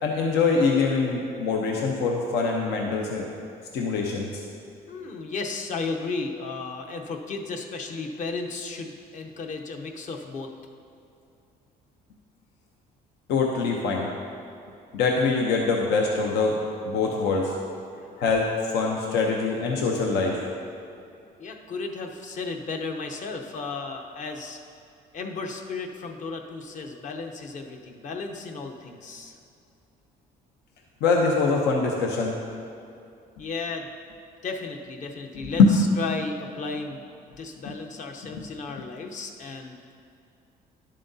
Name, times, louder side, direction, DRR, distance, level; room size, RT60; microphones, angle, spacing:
voice 1, 0.0-3.3 3.7-4.3 13.3-14.1 14.9-16.5 16.9-17.5 18.2-20.4 31.0-32.3 35.6-35.7 37.6-37.7 38.4-38.5 38.8-38.9, left 4 dB, 85° left, 0 dB, 0.8 m, -23 dB
voice 2, 4.9-10.5 17.9-18.0 21.4-24.6 25.1-29.3 33.4-33.9 34.4-37.0 37.4-39.8, left 4 dB, 45° left, 3 dB, 0.8 m, -34 dB
11.0 x 7.5 x 2.7 m, 2.5 s
cardioid pair, 110°, 17 cm